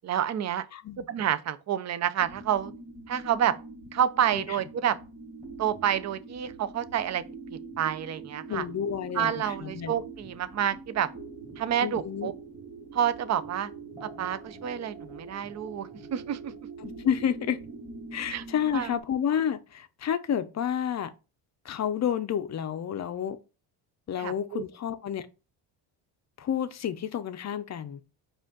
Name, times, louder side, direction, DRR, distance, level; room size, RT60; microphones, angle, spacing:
voice 1, 0.0-0.7 1.1-2.7 3.1-3.6 3.9-5.0 5.6-7.2 7.8-8.6 9.1-11.1 11.6-12.3 12.9-13.7 14.0-16.5 18.3-18.4 18.7-18.9 24.2-24.6, right 10 dB, 35° right, 0.5 m, -28 dB
voice 2, 0.7-1.1 4.3-4.4 8.5-9.9 11.8-12.3 16.8-17.6 18.1-21.1 21.6-23.4 24.1-25.2 26.4-28.0, left 9 dB, 35° left, 0.6 m, -30 dB
sound 1, 2.2-19.0, right 3 dB, 15° right, 1.7 m, -44 dB
5.0 x 2.5 x 3.7 m
cardioid pair, 85°, 47 cm